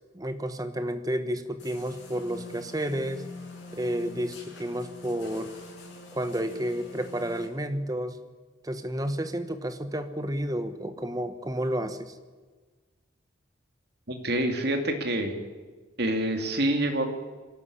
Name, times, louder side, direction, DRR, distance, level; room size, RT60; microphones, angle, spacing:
voice 1, 0.1-3.2 3.7-5.5 6.1-8.2 8.6-12.1, equal, 20° right, 9 dB, 1.2 m, -31 dB
sound 1, 1.6-7.5, left 2 dB, 65° left, 6.8 m, -45 dB
voice 2, 14.1-15.3 16.0-17.2, right 1 dB, 55° right, 4 dB, 2.5 m, -27 dB
23.0 x 13.5 x 10.0 m, 1.4 s
head